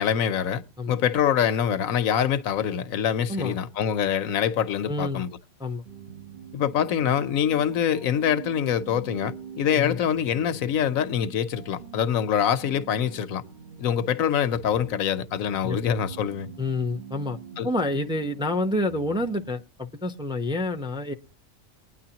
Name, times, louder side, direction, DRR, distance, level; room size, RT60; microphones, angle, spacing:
voice 1, 0.0-5.3 6.5-13.4 13.8-16.5 17.6-17.7, left 8 dB, 85° left, 1.2 m, -25 dB
voice 2, 4.9-5.2 5.6-5.8 9.7-10.0 15.6-15.8 16.6-17.4 17.6-21.1, left 2 dB, 5° right, 0.6 m, -28 dB
sound 1, 5.8-19.5, right 7 dB, 40° right, 1.3 m, -44 dB
20.5 x 9.9 x 2.9 m
omnidirectional pair, 1.4 m